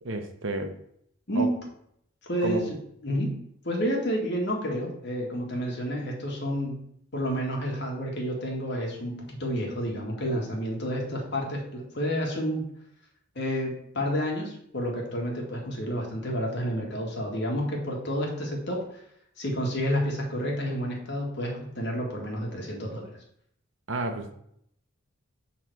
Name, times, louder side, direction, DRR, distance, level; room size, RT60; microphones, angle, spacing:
voice 1, 0.0-0.7 1.4-1.5 2.4-2.6 11.1-11.2 23.9-24.3, right 2 dB, 65° right, 6 dB, 0.9 m, -31 dB
voice 2, 2.3-2.8 3.0-3.4 3.6-6.8 7.1-12.7 13.4-18.8 19.4-23.2, equal, 50° left, -1 dB, 1.7 m, -30 dB
7.8 x 3.8 x 4.5 m, 0.70 s
head